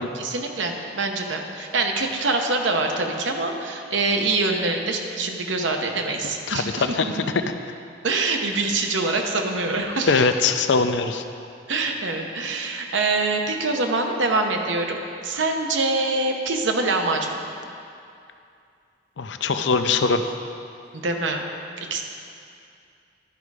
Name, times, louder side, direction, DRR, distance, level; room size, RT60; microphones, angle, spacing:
voice 1, 0.1-7.1 8.0-10.3 11.7-15.0 15.2-17.4 20.9-21.5 21.9-22.1, right 3 dB, 85° right, 3 dB, 0.9 m, -24 dB
voice 2, 6.5-7.1 10.1-11.2 19.2-20.2, left 4 dB, 70° left, 8 dB, 0.5 m, -21 dB
11.5 x 5.3 x 4.8 m, 2.5 s
head